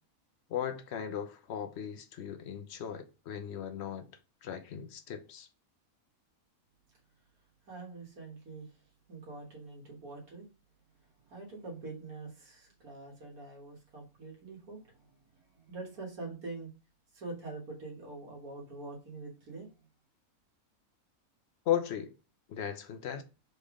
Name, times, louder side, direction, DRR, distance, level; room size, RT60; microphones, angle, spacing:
voice 1, 0.5-4.1 4.4-5.5 21.7-22.1 22.5-23.2, left 9 dB, 60° left, 0.8 m, -36 dB
voice 2, 7.7-8.8 9.1-10.5 11.2-16.7 17.1-19.7, right 3 dB, 85° right, 1.8 m, -45 dB
4.1 x 3.4 x 3.6 m
omnidirectional pair, 1.5 m